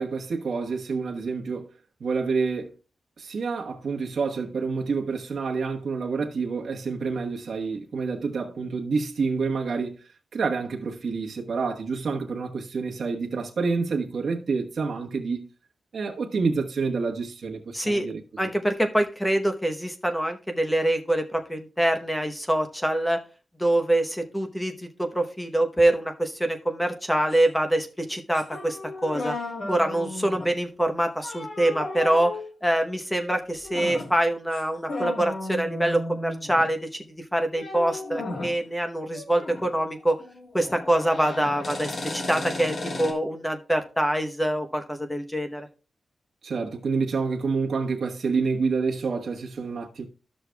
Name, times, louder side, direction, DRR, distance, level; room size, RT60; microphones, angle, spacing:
voice 1, 0.0-1.7 2.0-2.7 3.2-10.0 10.3-15.5 15.9-18.2 46.4-50.0, right 4 dB, 70° right, 1.2 m, -28 dB
voice 2, 17.7-18.1 18.4-23.2 23.6-24.7 25.0-29.3 29.7-32.3 32.6-37.0 37.3-40.2 40.5-45.7, right 1 dB, 5° left, 0.9 m, -25 dB
sound 1, 27.3-27.5 28.3-30.6 31.2-32.5 33.6-34.2 34.5-34.6 34.9-36.8 37.5-38.6 39.1-39.7 39.9-43.1, left 2 dB, 55° left, 1.5 m, -35 dB
13.0 x 6.4 x 2.3 m
wide cardioid pair, 90°, 0 cm